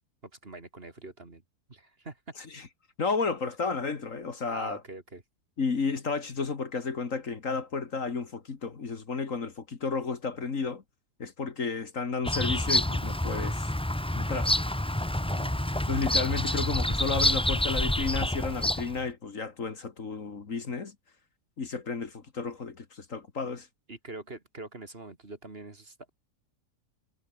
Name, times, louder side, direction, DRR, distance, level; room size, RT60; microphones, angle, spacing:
voice 1, 0.2-1.4 1.7-2.2 4.5-5.2 15.2-15.9 23.9-26.1, right 2 dB, 35° right, 2.7 m, -44 dB
voice 2, 2.4-2.7 3.0-4.8 5.6-10.8 11.2-13.7 14.2-14.5 15.9-21.0 21.6-23.7, left 4 dB, 50° left, 2.2 m, -32 dB
Bird vocalization bird call bird song, 12.2-19.0, left 1 dB, 10° left, 0.3 m, -28 dB
omnidirectional pair, 1.7 m